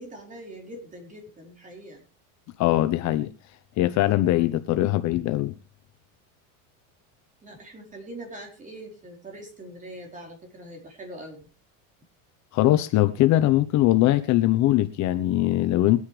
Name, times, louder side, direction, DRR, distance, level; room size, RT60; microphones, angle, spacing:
voice 1, 0.0-2.0 7.4-11.4, right 1 dB, 20° right, 4.5 m, -42 dB
voice 2, 2.6-3.3 3.8-5.5 12.5-16.0, left 15 dB, 45° left, 1.0 m, -21 dB
23.0 x 9.6 x 3.3 m
supercardioid pair, 140°, 40 cm